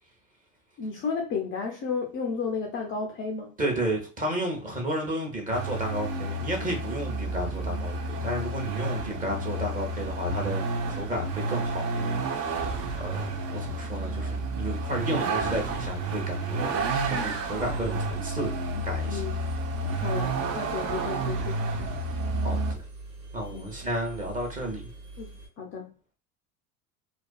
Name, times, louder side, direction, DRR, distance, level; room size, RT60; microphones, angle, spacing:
voice 1, 0.8-3.5 19.0-19.3 20.0-21.9 23.5-23.7 25.2-25.3 25.6-25.9, left 5 dB, 30° left, 0.4 m, -33 dB
voice 2, 3.6-12.7 13.0-18.5 18.8-19.2 22.4-22.8 23.3-24.8, right 1 dB, 20° right, 0.8 m, -32 dB
Vehicle, 5.5-22.7, right 2 dB, 35° right, 0.4 m, -30 dB
Engine, 16.7-25.5, right 3 dB, 80° right, 1.5 m, -43 dB
2.4 x 2.2 x 2.3 m
hypercardioid pair, 85°, 46 cm